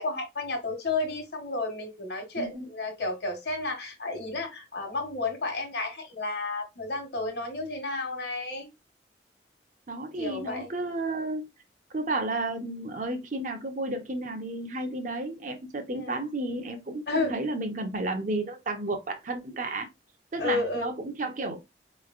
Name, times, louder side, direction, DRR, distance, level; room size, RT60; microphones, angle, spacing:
voice 1, 0.0-8.7 10.2-10.7 15.9-16.1 17.1-17.3 20.4-20.9, left 3 dB, 65° left, 1.3 m, -32 dB
voice 2, 2.4-2.7 9.9-11.5 11.9-19.9 20.3-21.6, right 2 dB, 45° right, 0.7 m, -32 dB
4.4 x 3.1 x 2.4 m
head